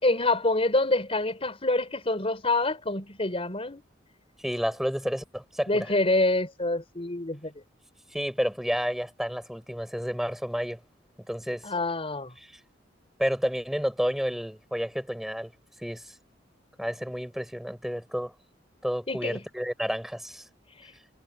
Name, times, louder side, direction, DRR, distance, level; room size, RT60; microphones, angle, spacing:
voice 1, 0.0-3.8 5.7-7.5 11.6-12.3 19.1-19.4, left 2 dB, 30° left, 4.2 m, -26 dB
voice 2, 4.4-5.9 8.1-10.8 11.3-11.6 13.2-15.5 15.8-16.0 16.8-18.3 18.8-20.4, equal, ahead, 6.2 m, -30 dB
head